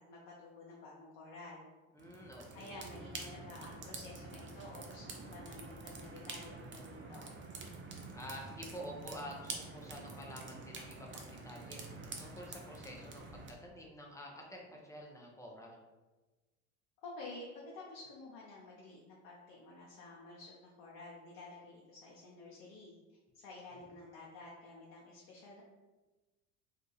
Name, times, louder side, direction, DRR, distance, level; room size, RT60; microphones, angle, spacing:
voice 1, 0.1-1.6 2.5-7.3 17.0-17.5 17.7-22.9 23.3-25.6, left 2 dB, 60° left, -4 dB, 0.8 m, -51 dB
voice 2, 1.9-2.7 8.1-11.8 12.2-15.8 23.9-24.1, equal, 10° left, -1 dB, 0.8 m, -49 dB
sound 1, 2.0-13.5, right 3 dB, 30° right, 0.6 m, -47 dB
2.7 x 2.4 x 3.9 m, 1.2 s
hypercardioid pair, 70°, 38 cm